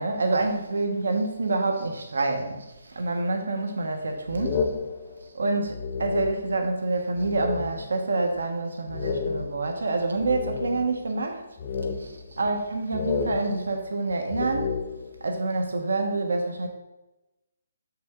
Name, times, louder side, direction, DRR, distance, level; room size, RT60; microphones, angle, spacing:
voice 1, 0.0-4.7 5.3-11.4 12.0-14.7 15.2-16.7, right 3 dB, 90° right, 4 dB, 1.0 m, -27 dB
sound 1, 4.3-6.7 7.2-8.0 8.4-8.5 8.9-11.1 11.6-12.7 12.9-15.3, left 5 dB, 25° left, 0.4 m, -32 dB
6.9 x 5.9 x 3.6 m, 1.0 s
hypercardioid pair, 175°, 0 cm